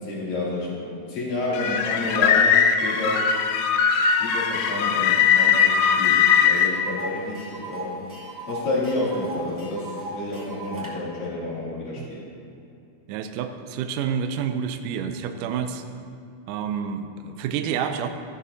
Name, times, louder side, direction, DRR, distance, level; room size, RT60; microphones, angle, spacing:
voice 1, 0.0-3.3 4.2-8.0 8.5-12.2, left 2 dB, 65° left, -8 dB, 4.5 m, -30 dB
sound 1, 1.5-6.7, left 7 dB, 80° left, 2.4 m, -20 dB
Tick, 6.0-6.1 6.4-10.9, right 2 dB, 5° right, 1.5 m, -37 dB
voice 2, 13.1-15.8 16.5-18.1, right 7 dB, 80° right, 7 dB, 1.9 m, -29 dB
14.0 x 12.5 x 2.8 m, 2.5 s
omnidirectional pair, 4.3 m